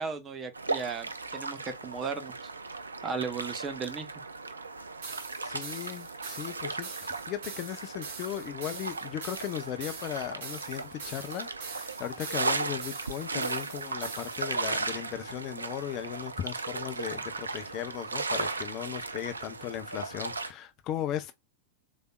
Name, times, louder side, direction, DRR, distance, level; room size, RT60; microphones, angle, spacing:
voice 1, 0.0-2.4 3.0-4.1, right 5 dB, 25° right, 0.9 m, -35 dB
sound 1, 0.5-20.5, right 3 dB, 80° right, 0.4 m, -36 dB
sound 2, 5.0-14.5, right 5 dB, 55° right, 1.1 m, -44 dB
voice 2, 5.4-21.3, left 11 dB, 35° left, 0.6 m, -37 dB
4.1 x 3.4 x 2.2 m
figure-of-eight pair, 90°, 0 cm